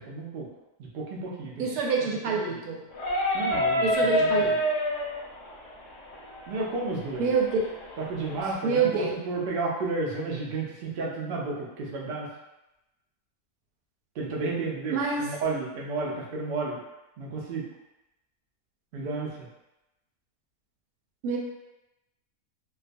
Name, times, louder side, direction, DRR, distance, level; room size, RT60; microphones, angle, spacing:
voice 1, 0.1-0.5 0.8-1.6 2.2-2.6 3.3-4.6 6.5-7.3 8.1-12.3 14.2-16.8 17.2-17.7 18.9-19.5, right 3 dB, 65° right, -3 dB, 0.5 m, -32 dB
voice 2, 1.6-2.8 3.8-4.5 7.2-7.6 7.9-9.2 14.9-15.3 21.2-21.4, right 5 dB, 90° right, -1 dB, 1.1 m, -27 dB
sound 1, 2.9-8.5, equal, 55° left, 0.8 m, -29 dB
2.4 x 2.4 x 2.5 m, 0.96 s
omnidirectional pair, 1.6 m